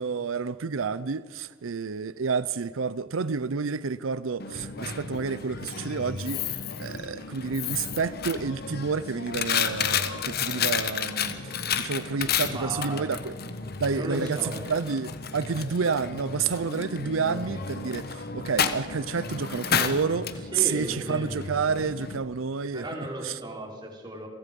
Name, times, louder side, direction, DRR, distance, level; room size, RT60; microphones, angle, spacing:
voice 1, 0.0-13.3 13.8-22.8 23.2-23.4, right 5 dB, 90° right, 0.6 m, -29 dB
Coin (dropping), 4.4-22.2, left 7 dB, 50° left, 1.3 m, -32 dB
voice 2, 12.4-13.1 13.9-14.6 20.5-21.3 22.7-24.3, right 1 dB, 20° right, 4.5 m, -35 dB
29.5 x 23.5 x 5.3 m
head